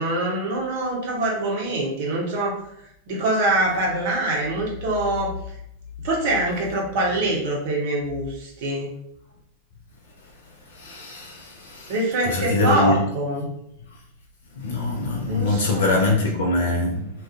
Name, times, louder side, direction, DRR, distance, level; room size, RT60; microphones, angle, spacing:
voice 1, 0.0-2.6 3.1-5.3 6.0-8.9 11.9-13.5 15.3-16.0, right 1 dB, 50° right, 0.8 m, -24 dB
voice 2, 10.8-11.9 12.3-13.0 14.6-17.1, left 2 dB, 60° left, 0.4 m, -23 dB
2.4 x 2.3 x 2.5 m
figure-of-eight pair, 90°, 0 cm